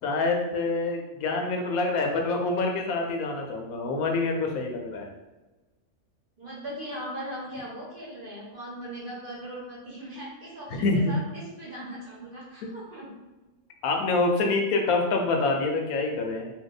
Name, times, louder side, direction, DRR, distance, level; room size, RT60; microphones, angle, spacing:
voice 1, 0.0-5.1 10.7-11.2 13.8-16.5, left 3 dB, 80° left, 2 dB, 1.0 m, -26 dB
voice 2, 6.4-13.2, equal, 45° right, -6 dB, 0.9 m, -39 dB
2.7 x 2.1 x 4.0 m, 1.1 s
omnidirectional pair, 1.5 m